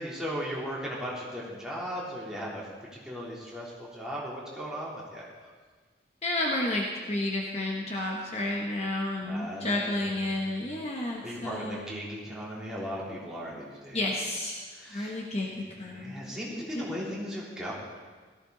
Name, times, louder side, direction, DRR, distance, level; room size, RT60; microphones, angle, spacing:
voice 1, 0.0-2.7 3.0-5.2 9.2-10.7 11.2-14.0 14.7-17.7, equal, 5° right, -7 dB, 3.4 m, -37 dB
voice 2, 6.2-11.8 13.9-14.6 14.9-16.4 16.7-16.8, left 1 dB, 35° left, -1 dB, 1.3 m, -31 dB
17.0 x 14.5 x 4.1 m, 1.5 s
head